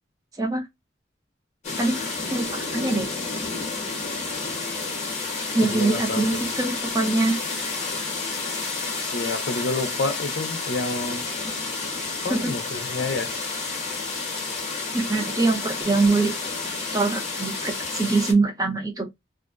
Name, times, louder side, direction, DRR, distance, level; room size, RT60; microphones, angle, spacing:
sound 1, 1.6-18.3, left 4 dB, 40° left, 0.8 m, -30 dB
voice 1, 1.8-3.1 5.5-7.4 12.3-12.4 14.9-16.3 16.9-19.1, right 3 dB, 20° right, 0.6 m, -23 dB
voice 2, 5.6-6.3 9.1-11.2 12.2-13.3, left 2 dB, 65° left, 0.5 m, -28 dB
2.5 x 2.1 x 2.4 m
head